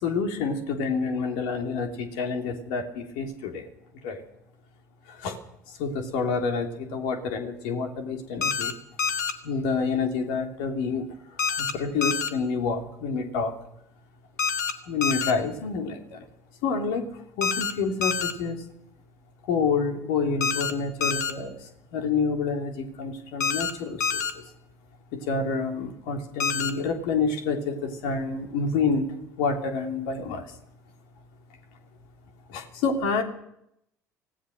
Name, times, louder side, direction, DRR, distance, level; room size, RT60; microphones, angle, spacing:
voice 1, 0.0-3.6 4.0-4.2 5.2-5.4 5.8-8.7 9.4-11.1 11.6-13.5 14.9-16.2 16.6-17.1 17.4-18.6 19.5-21.6 21.9-24.0 25.3-29.1 29.4-30.4 32.5-33.2, left 4 dB, 60° left, 4 dB, 3.1 m, -28 dB
sound 1, 8.4-8.7 9.0-9.3 11.4-11.7 12.0-12.3 14.4-14.7 15.0-15.3 17.4-17.7 18.0-18.3 20.4-20.7 21.0-21.3 23.4-23.7 24.0-24.3 26.4-26.7, left 6 dB, 80° left, 1.4 m, -26 dB
25.0 x 17.0 x 6.5 m, 0.78 s
figure-of-eight pair, 60°, 9 cm